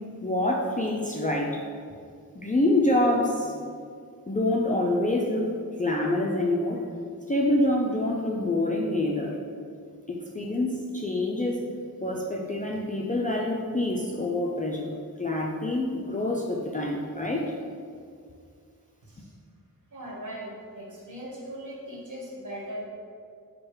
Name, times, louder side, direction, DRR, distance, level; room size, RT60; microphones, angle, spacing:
voice 1, 0.2-1.6 2.4-3.5 4.3-6.8 7.3-9.4 10.1-11.6 12.0-14.9 15.2-17.5, left 1 dB, 25° left, -2 dB, 0.3 m, -26 dB
voice 2, 19.0-19.3 19.9-22.8, equal, 55° right, -4 dB, 1.2 m, -39 dB
4.7 x 2.2 x 4.6 m, 2.2 s
wide cardioid pair, 95°, 36 cm